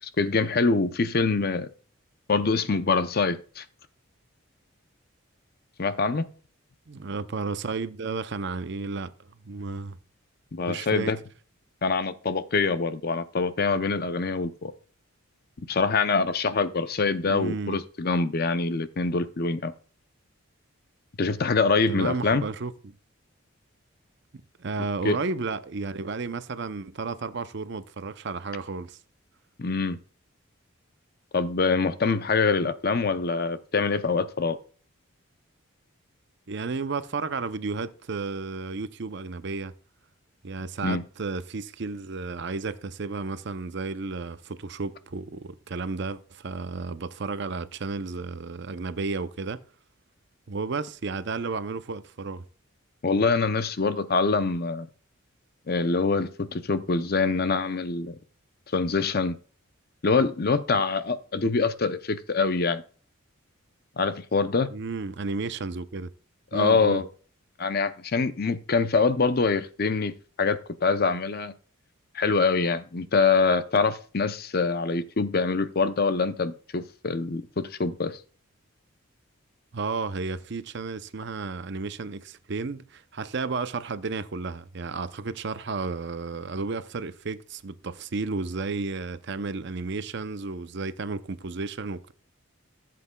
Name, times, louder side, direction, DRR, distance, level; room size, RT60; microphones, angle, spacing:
voice 1, 0.2-1.7 2.3-3.6 5.8-6.3 10.5-11.2 11.8-14.7 15.6-19.7 21.2-22.4 25.0-25.2 29.6-30.0 31.3-34.6 40.8-41.0 53.0-54.9 55.7-58.2 58.7-59.4 60.0-62.8 64.0-64.7 66.5-67.0 67.6-70.1 70.4-71.5 72.1-78.2, left 4 dB, 45° left, 0.6 m, -25 dB
voice 2, 6.9-10.0 10.7-11.1 17.3-17.8 21.9-22.9 24.6-29.0 36.5-39.7 40.4-49.6 50.5-52.4 64.7-66.1 66.5-67.0 79.7-92.1, right 4 dB, 55° right, 0.6 m, -32 dB
15.0 x 7.6 x 2.3 m
head